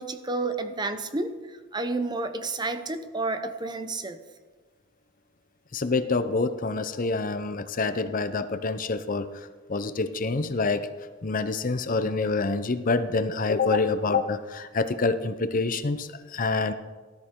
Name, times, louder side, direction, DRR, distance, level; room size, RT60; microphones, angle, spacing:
voice 1, 0.0-4.2 13.6-13.8, right 3 dB, 20° right, 9 dB, 0.7 m, -30 dB
voice 2, 5.7-9.3 9.7-10.9 11.2-16.7, left 3 dB, 40° left, 11 dB, 0.7 m, -26 dB
18.0 x 13.0 x 3.8 m, 1.3 s
head